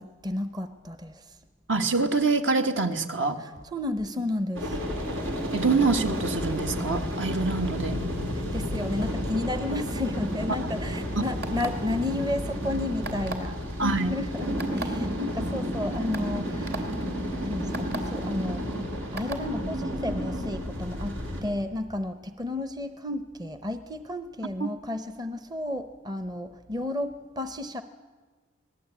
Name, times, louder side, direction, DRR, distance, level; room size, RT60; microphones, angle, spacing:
voice 1, 0.0-1.3 3.4-4.8 7.3-7.4 8.3-16.9 17.4-18.7 19.1-27.8, left 1 dB, 20° right, 10 dB, 0.8 m, -32 dB
voice 2, 1.7-3.4 5.5-8.0 13.8-14.2 24.6-24.7, right 4 dB, 65° right, 6 dB, 1.8 m, -25 dB
sound 1, 4.6-21.4, equal, 85° right, 5.2 m, -31 dB
sound 2, 11.4-11.9 13.0-13.5 14.6-14.9 15.6-15.7 16.1-16.3 16.7-16.8 17.7-18.0 19.2-19.4, right 3 dB, 50° right, 3.0 m, -34 dB
26.0 x 19.0 x 8.5 m, 1.4 s
head